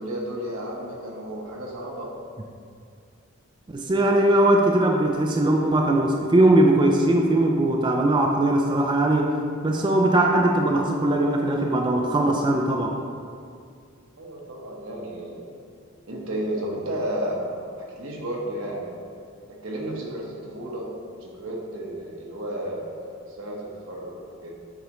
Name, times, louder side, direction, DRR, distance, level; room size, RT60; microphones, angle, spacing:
voice 1, 0.0-2.1 14.2-15.6 16.0-18.9 19.4-24.5, right 1 dB, 75° right, -2 dB, 1.2 m, -33 dB
voice 2, 3.7-9.4 9.6-13.0, right 1 dB, 25° right, 1 dB, 0.4 m, -20 dB
8.1 x 4.9 x 3.1 m, 2.3 s
head